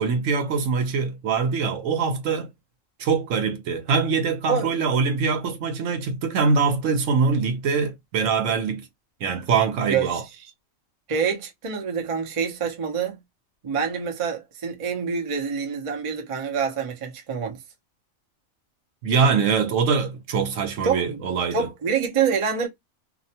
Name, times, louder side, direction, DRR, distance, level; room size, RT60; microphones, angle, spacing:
voice 1, 0.0-2.5 3.0-8.8 9.2-10.2 19.0-21.7, right 5 dB, 70° right, 1.0 m, -23 dB
voice 2, 4.4-4.8 9.9-10.2 11.1-13.2 13.6-17.6 20.8-21.2 21.5-22.7, right 6 dB, 40° right, 0.5 m, -26 dB
2.6 x 2.1 x 2.7 m
omnidirectional pair, 1.4 m